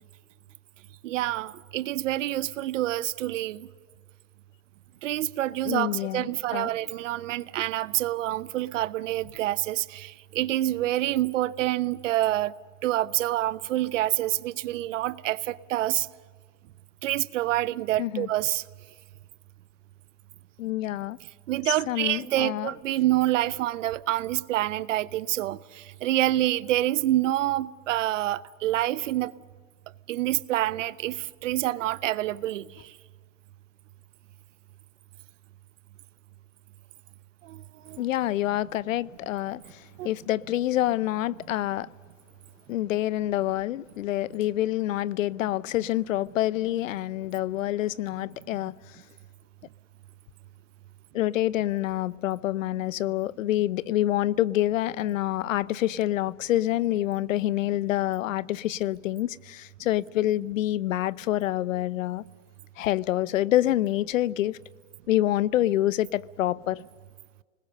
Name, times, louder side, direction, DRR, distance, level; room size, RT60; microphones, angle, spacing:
voice 1, 1.0-3.7 5.0-12.5 12.8-16.1 17.0-18.6 21.5-29.3 30.1-32.7 37.4-38.0 40.0-40.1 48.5-48.6, right 15 dB, 70° right, 0.9 m, -27 dB
voice 2, 5.6-6.7 18.0-18.3 20.6-21.2 21.7-22.7 38.0-39.6 40.0-41.9 42.7-48.7 51.1-62.2 62.8-64.6 65.1-66.8, left 14 dB, 85° left, 0.8 m, -27 dB
27.5 x 20.5 x 6.7 m
supercardioid pair, 150°, 39 cm